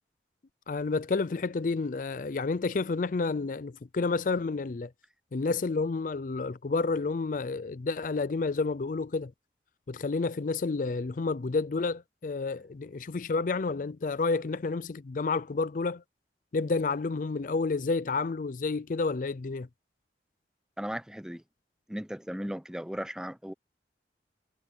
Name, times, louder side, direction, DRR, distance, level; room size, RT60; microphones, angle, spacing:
voice 1, 0.7-4.9 5.3-9.3 9.9-16.0 16.5-19.7, left 4 dB, 45° left, 0.4 m, -30 dB
voice 2, 20.8-21.4 21.9-23.5, equal, 5° right, 0.7 m, -36 dB
head